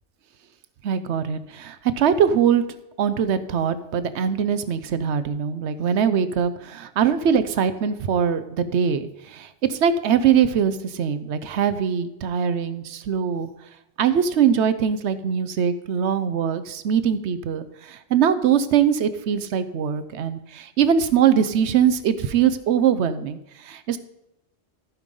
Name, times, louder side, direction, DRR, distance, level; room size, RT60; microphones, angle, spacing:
voice 1, 0.8-2.6 3.0-13.5 14.0-24.0, right 8 dB, 75° right, 12 dB, 0.9 m, -22 dB
14.5 x 5.3 x 5.3 m, 0.92 s
omnidirectional pair, 1.2 m